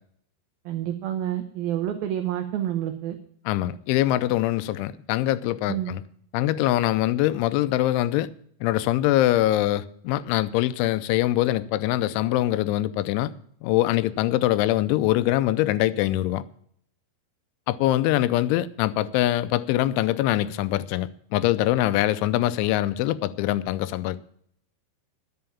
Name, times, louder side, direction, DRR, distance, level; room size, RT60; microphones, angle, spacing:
voice 1, 0.7-3.2 5.7-5.9, right 11 dB, 90° right, 2.0 m, -28 dB
voice 2, 3.5-6.0 6.3-8.3 8.6-13.3 13.6-16.4 17.7-24.2, left 14 dB, 85° left, 3.0 m, -23 dB
11.5 x 8.0 x 7.0 m
omnidirectional pair, 5.4 m